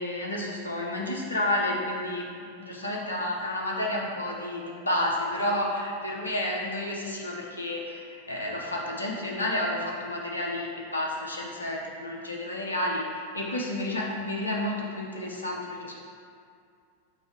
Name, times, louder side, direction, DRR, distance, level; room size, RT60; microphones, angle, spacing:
voice 1, 0.0-16.0, left 1 dB, 85° left, -2 dB, 0.6 m, -31 dB
5.2 x 2.6 x 3.5 m, 2.3 s
figure-of-eight pair, 90°, 0 cm